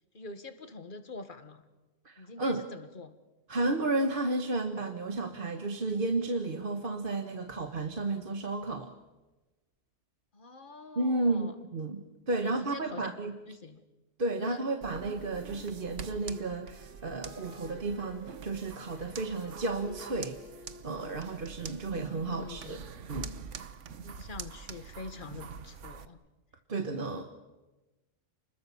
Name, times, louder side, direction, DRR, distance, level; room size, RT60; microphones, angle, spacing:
voice 1, 0.1-1.6 2.2-3.1 10.3-11.6 12.4-13.2 13.5-13.8 14.4-14.6 22.1-22.7 24.0-26.2, left 3 dB, 45° left, 10 dB, 1.8 m, -45 dB
voice 2, 2.0-2.6 3.5-8.9 11.0-13.4 14.2-20.4 20.8-22.8 23.1-23.3 26.7-27.2, right 2 dB, 50° right, 6 dB, 1.5 m, -32 dB
Wind instrument woodwind instrument, 14.6-22.6, equal, 10° right, 3.1 m, -54 dB
sound 1, 14.8-26.1, right 6 dB, 85° right, 1.4 m, -45 dB
29.5 x 21.0 x 7.1 m, 1.1 s
omnidirectional pair, 1.2 m